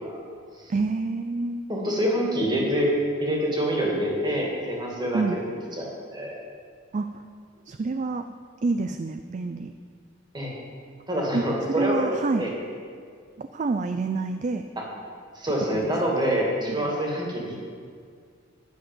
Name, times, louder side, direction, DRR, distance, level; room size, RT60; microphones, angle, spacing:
voice 1, 0.7-1.6 5.1-5.4 6.9-7.3 7.7-8.3 8.6-9.7 11.3-11.4 11.8-12.4 13.4-14.6 15.7-15.9 16.8-16.9, right 3 dB, 40° right, 8 dB, 0.4 m, -27 dB
voice 2, 1.7-2.9 3.2-5.4 5.7-6.4 10.3-10.5 11.1-12.1 12.4-12.5 14.8-14.9 15.3-17.6, equal, 25° right, -2 dB, 2.2 m, -26 dB
10.0 x 6.6 x 7.7 m, 2.1 s
head